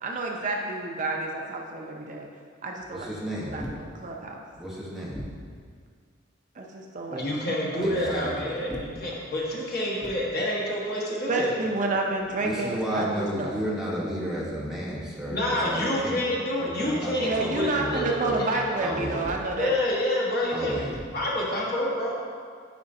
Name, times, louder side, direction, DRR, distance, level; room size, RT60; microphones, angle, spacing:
voice 1, 0.0-2.3 2.6-3.1 3.4-4.4 6.6-8.1 11.3-13.6 17.2-19.8, right 2 dB, 40° right, 1 dB, 0.5 m, -30 dB
voice 2, 2.9-3.7 4.6-5.2 7.8-8.6 12.4-16.2 16.6-19.2 20.5-20.9, equal, ahead, -6 dB, 1.0 m, -32 dB
voice 3, 7.1-11.5 15.3-18.7 19.6-20.8 21.1-22.1, left 1 dB, 55° left, -5 dB, 1.3 m, -28 dB
9.3 x 4.9 x 2.7 m, 2.1 s
head